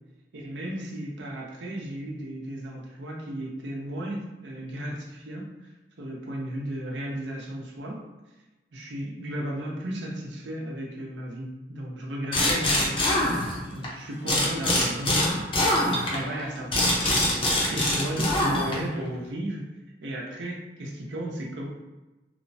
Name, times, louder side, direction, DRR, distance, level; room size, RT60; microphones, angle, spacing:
voice 1, 0.3-5.4 6.0-8.0 8.7-13.0 13.7-15.5 15.8-17.2 17.7-19.7 20.0-21.7, right 1 dB, 80° right, -2 dB, 0.6 m, -34 dB
sound 1, 12.3-13.9 14.3-19.0, left 1 dB, 30° left, 0.5 m, -24 dB
3.0 x 2.0 x 2.6 m, 1.1 s
head